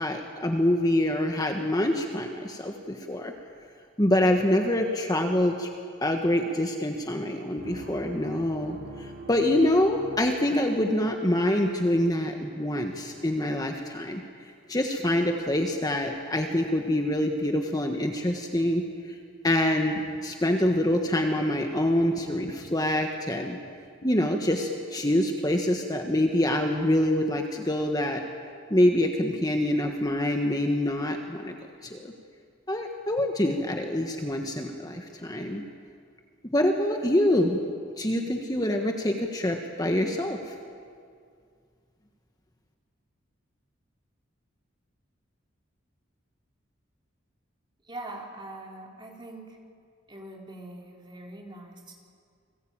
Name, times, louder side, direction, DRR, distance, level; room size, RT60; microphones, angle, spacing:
voice 1, 0.0-3.3 4.0-5.7 6.0-14.2 14.7-18.8 19.4-23.6 24.0-28.2 28.7-31.5 31.8-32.1 32.7-35.6 36.5-37.6 38.0-40.5, left 1 dB, 20° left, 3 dB, 1.5 m, -25 dB
sound 1, 7.6-11.1, right 1 dB, 60° right, 3.3 m, -43 dB
sound 2, 19.4-19.6 19.9-20.3 20.9-21.5 22.1-22.8 23.7-24.3 24.6-25.3 26.3-26.9 27.9-28.0, left 1 dB, 65° left, 2.5 m, -47 dB
voice 2, 47.8-49.6 50.1-52.0, right 2 dB, 25° right, 0 dB, 3.5 m, -42 dB
29.5 x 21.0 x 8.9 m, 2.2 s
head